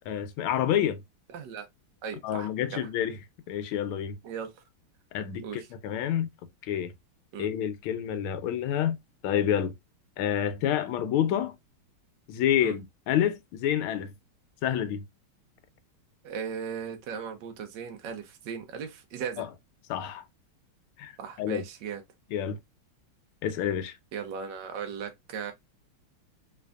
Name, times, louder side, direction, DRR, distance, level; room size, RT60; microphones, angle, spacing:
voice 1, 0.1-1.0 2.2-3.2 3.5-4.2 5.1-6.3 6.7-6.9 7.4-9.0 9.2-9.7 10.2-11.5 12.3-14.1 14.6-15.1 19.4-19.5 19.9-20.2 21.0-21.1 21.4-21.6 22.3-22.6 23.4-23.9, left 10 dB, 90° left, 1.5 m, -28 dB
voice 2, 1.3-1.7 2.0-2.9 4.2-4.6 5.4-5.7 7.3-7.5 12.6-12.8 16.2-19.5 21.2-22.0 24.1-25.5, right 7 dB, 65° right, 1.4 m, -37 dB
3.9 x 3.3 x 2.3 m
omnidirectional pair, 2.3 m